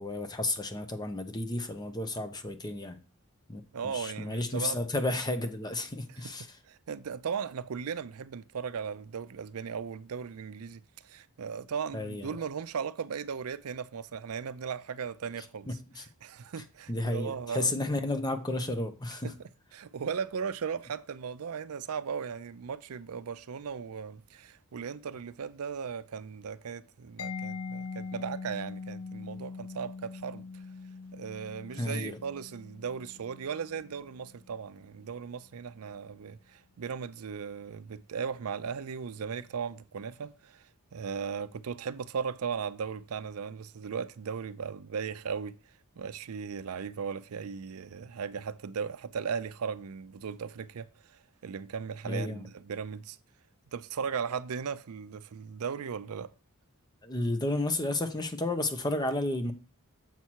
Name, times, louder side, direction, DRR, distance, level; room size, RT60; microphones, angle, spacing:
voice 1, 0.0-3.0 3.5-6.5 11.9-12.3 16.0-16.1 16.9-19.3 31.8-32.2 52.1-52.4 57.0-59.5, left 2 dB, 20° left, 0.7 m, -32 dB
voice 2, 3.7-4.8 6.1-6.2 6.7-15.7 16.0-17.8 19.2-19.4 19.7-30.6 31.1-45.6 46.0-53.2 53.7-56.3, right 6 dB, 80° right, 0.5 m, -37 dB
Mallet percussion, 27.2-34.7, left 4 dB, 70° left, 0.5 m, -42 dB
7.4 x 5.6 x 4.6 m
head